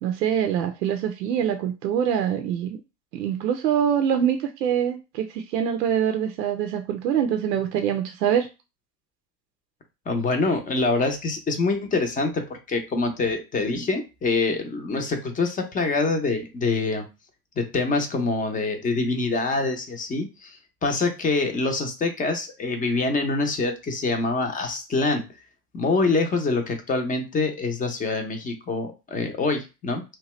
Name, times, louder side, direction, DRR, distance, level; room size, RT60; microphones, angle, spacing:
voice 1, 0.0-2.8 3.1-8.5, right 9 dB, 90° right, 6 dB, 0.6 m, -24 dB
voice 2, 10.1-17.1 17.6-25.3 25.7-30.0, left 3 dB, 15° left, 5 dB, 0.6 m, -25 dB
2.8 x 2.3 x 3.0 m, 0.28 s
hypercardioid pair, 95°, 49 cm